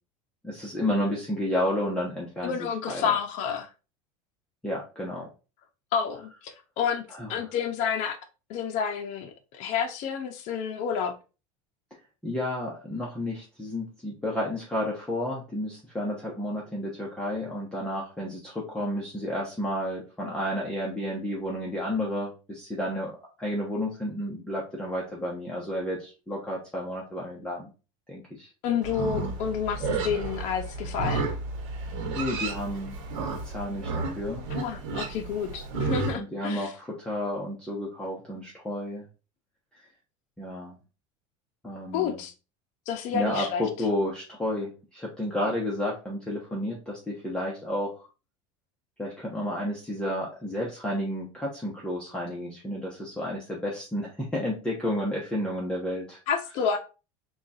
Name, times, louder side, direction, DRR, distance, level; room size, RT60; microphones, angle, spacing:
voice 1, 0.4-3.1 4.6-5.3 7.1-7.5 12.2-23.1 23.4-27.7 28.1-28.5 32.2-32.9 33.2-34.5 36.1-39.0 40.4-40.8 41.6-42.2 43.1-48.1 49.0-56.2, left 1 dB, 5° left, 0.8 m, -31 dB
voice 2, 2.4-3.7 5.9-7.0 7.3-8.2 8.5-11.1 28.6-31.3 34.5-36.7 41.9-42.3 42.9-43.6 56.3-56.8, left 7 dB, 50° left, 0.6 m, -29 dB
Livestock farm animals working animals, 28.8-36.1, right 3 dB, 75° right, 1.0 m, -32 dB
3.7 x 2.3 x 3.9 m
supercardioid pair, 140°, 16 cm